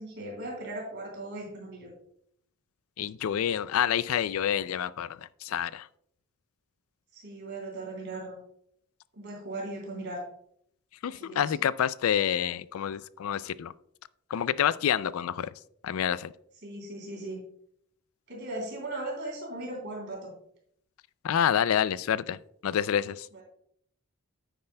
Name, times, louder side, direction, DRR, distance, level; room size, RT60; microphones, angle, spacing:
voice 1, 0.0-1.9 7.1-8.4 9.1-10.2 11.1-11.5 16.6-17.4 18.3-20.3 23.3-23.4, right 2 dB, 55° right, -1 dB, 3.3 m, -38 dB
voice 2, 3.0-5.1 5.4-5.9 11.0-13.7 14.3-15.5 15.8-16.3 21.2-22.4 22.6-23.3, left 9 dB, 75° left, 18 dB, 0.3 m, -27 dB
9.8 x 8.9 x 2.2 m, 0.69 s
head